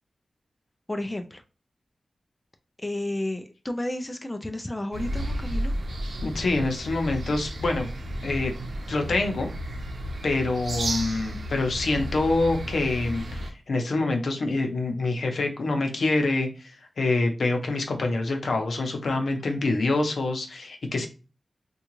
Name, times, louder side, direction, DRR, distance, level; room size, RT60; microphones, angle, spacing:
voice 1, 0.9-1.4 2.8-5.7, left 1 dB, 15° left, 6 dB, 0.3 m, -32 dB
sound 1, 4.9-13.5, equal, 80° right, 0.7 m, -33 dB
voice 2, 6.2-7.9 8.2-8.6 8.9-9.5 10.2-21.1, left 2 dB, 75° left, 4 dB, 0.6 m, -26 dB
3.6 x 2.3 x 3.0 m, 0.33 s
wide cardioid pair, 120°, 0 cm